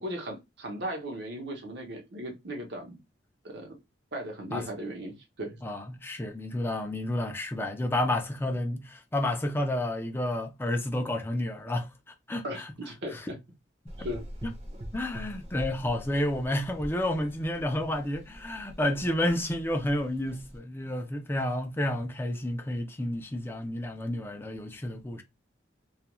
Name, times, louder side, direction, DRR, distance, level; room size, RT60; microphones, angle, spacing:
voice 1, 0.0-3.0 3.4-3.7 4.1-5.6 12.4-12.6 12.8-13.4 14.0-14.3, equal, 65° right, 0.8 m, -37 dB
voice 2, 5.6-11.9 12.3-12.7 13.1-13.3 14.9-25.2, left 1 dB, 10° left, 0.4 m, -30 dB
Gurgling / Engine, 13.9-20.6, equal, 35° right, 0.6 m, -44 dB
2.3 x 2.2 x 2.9 m
head